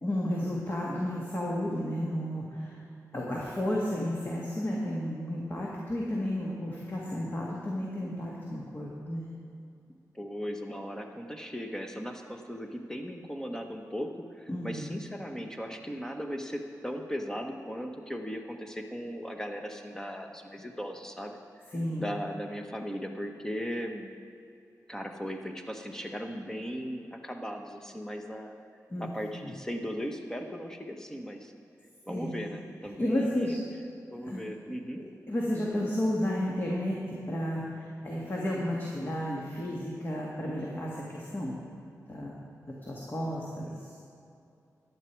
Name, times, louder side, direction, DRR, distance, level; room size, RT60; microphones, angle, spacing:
voice 1, 0.0-2.8 3.1-9.2 14.5-14.9 21.7-22.0 28.9-29.1 29.4-29.5 32.1-32.4 33.0-33.6 34.2-34.4 34.9-37.0 37.3-41.6 42.1-42.4 42.9-43.8, left 1 dB, 35° left, -4 dB, 2.0 m, -32 dB
voice 2, 10.1-21.4 22.0-24.1 24.9-28.5 29.0-31.5 32.1-33.5 34.1-35.0, equal, 10° left, 3 dB, 1.2 m, -37 dB
14.0 x 11.0 x 4.7 m, 2.6 s
wide cardioid pair, 90°, 6 cm